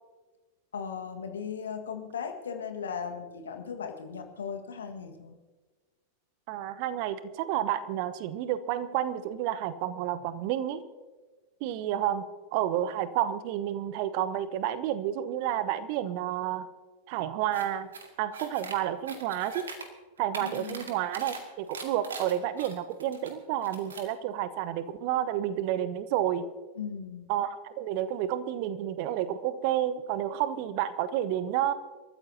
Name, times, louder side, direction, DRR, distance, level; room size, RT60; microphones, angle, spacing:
voice 1, 0.7-5.4 20.4-20.9 26.8-27.3, left 6 dB, 70° left, 4 dB, 1.8 m, -37 dB
voice 2, 6.5-10.8 11.6-16.7 17.1-17.9 18.2-19.7 20.2-26.5 27.3-31.7, right 11 dB, 45° right, 13 dB, 1.0 m, -30 dB
sound 1, 17.5-17.6 17.9-18.7 19.1-19.8 20.2-21.4 21.7-23.3 23.6-24.1, right 4 dB, 70° right, 2.3 m, -41 dB
29.0 x 14.0 x 2.9 m, 1.3 s
figure-of-eight pair, 90°, 0 cm